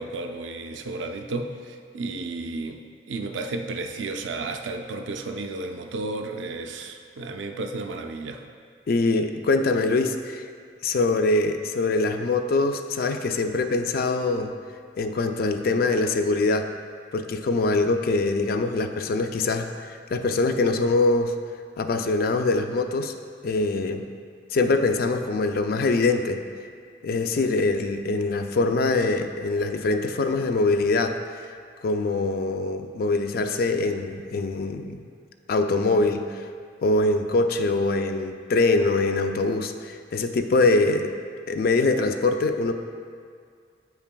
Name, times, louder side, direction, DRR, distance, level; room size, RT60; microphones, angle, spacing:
voice 1, 0.0-8.4, right 3 dB, 80° right, 5 dB, 0.4 m, -33 dB
voice 2, 8.9-10.4 10.8-14.5 15.0-16.7 17.1-21.3 21.8-23.1 23.4-24.1 24.5-26.4 27.0-31.2 31.8-35.0 35.5-36.4 36.8-41.1 41.5-42.7, left 3 dB, 55° left, 6 dB, 0.3 m, -23 dB
7.6 x 5.7 x 2.2 m, 2.1 s
head